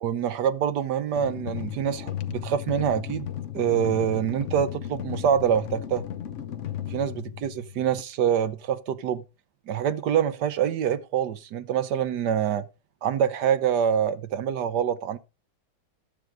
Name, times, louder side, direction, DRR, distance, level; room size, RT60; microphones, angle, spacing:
voice 1, 0.0-3.3 3.5-6.0 6.9-9.2 9.7-12.7 13.0-15.2, right 9 dB, 70° right, 1.3 m, -25 dB
sound 1, 1.1-8.0, left 10 dB, 55° left, 0.9 m, -35 dB
12.0 x 7.9 x 4.8 m
omnidirectional pair, 2.0 m